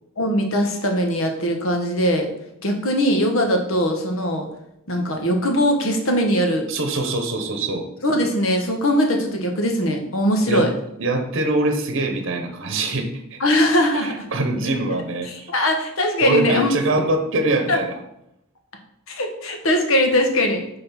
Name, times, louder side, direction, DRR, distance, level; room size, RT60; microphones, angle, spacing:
voice 1, 0.2-2.3 2.6-4.5 4.9-6.7 8.0-10.7 13.4-14.2 15.2-16.7 17.7-17.8 19.1-20.6, equal, 75° left, 3 dB, 1.2 m, -21 dB
voice 2, 6.7-7.9 10.5-10.7 11.0-13.4 13.9-15.5 16.2-18.0, right 2 dB, 65° right, 6 dB, 0.9 m, -23 dB
5.7 x 3.8 x 5.8 m, 0.80 s
head